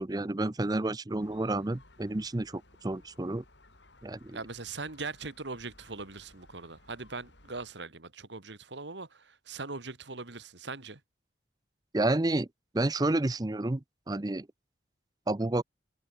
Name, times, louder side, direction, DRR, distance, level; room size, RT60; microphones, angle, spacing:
voice 1, 0.0-3.4 4.0-4.4 11.9-12.5 12.7-14.5 15.3-15.6, right 2 dB, 20° right, 0.6 m, -30 dB
Gull seagull, 1.2-7.7, left 2 dB, 75° left, 6.3 m, -59 dB
voice 2, 4.3-11.0, right 3 dB, 75° right, 2.1 m, -41 dB
open air
head